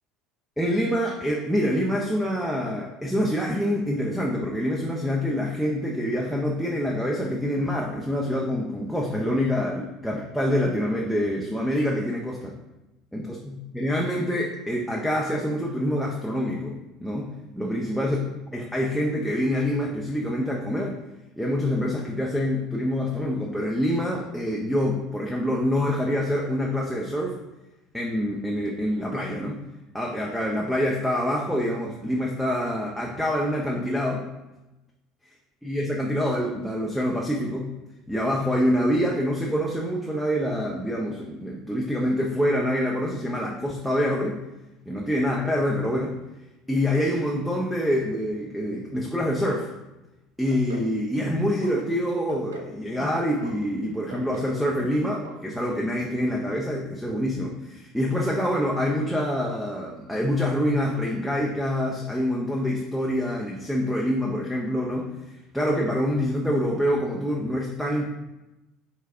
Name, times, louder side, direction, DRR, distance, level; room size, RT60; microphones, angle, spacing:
voice 1, 0.6-12.5 13.1-17.3 17.5-18.2 18.5-21.0 21.4-27.4 27.9-29.6 29.9-34.3 35.6-37.7 38.1-44.4 44.9-46.2 46.7-49.7 50.4-65.1 65.5-68.0, equal, ahead, -2 dB, 0.5 m, -26 dB
sound 1, 50.5-50.9 51.2-51.7 52.1-52.7 53.0-53.5 53.9-54.5 54.8-55.0 55.2-55.4 55.7-55.8, right 3 dB, 80° right, 0.4 m, -39 dB
4.7 x 2.2 x 3.4 m, 1.0 s
figure-of-eight pair, 65°, 0 cm